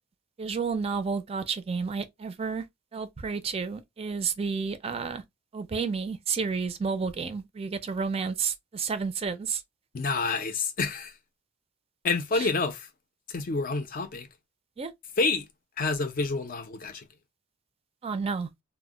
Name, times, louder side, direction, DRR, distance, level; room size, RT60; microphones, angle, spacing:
voice 1, 0.4-2.7 2.9-5.2 5.5-9.6 12.3-12.5 14.8-14.9 18.0-18.5, right 5 dB, 30° right, 0.4 m, -31 dB
voice 2, 9.9-11.1 12.0-12.9 13.3-14.3 15.2-15.4 15.8-17.0, left 3 dB, 40° left, 0.5 m, -28 dB
2.1 x 2.1 x 3.6 m
head